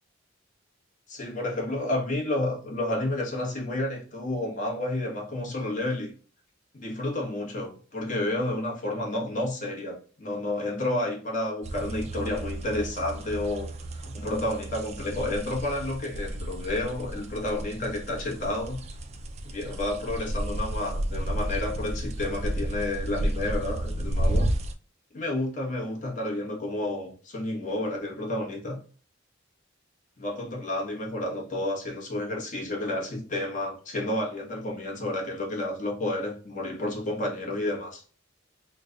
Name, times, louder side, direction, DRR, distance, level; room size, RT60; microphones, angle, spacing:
voice 1, 1.1-6.1 6.7-13.7 14.0-18.8 19.4-24.5 25.1-28.8 30.2-38.0, left 1 dB, 40° left, 1.1 m, -30 dB
sound 1, 11.6-24.7, right 1 dB, 35° right, 0.4 m, -32 dB
3.2 x 2.2 x 3.6 m
head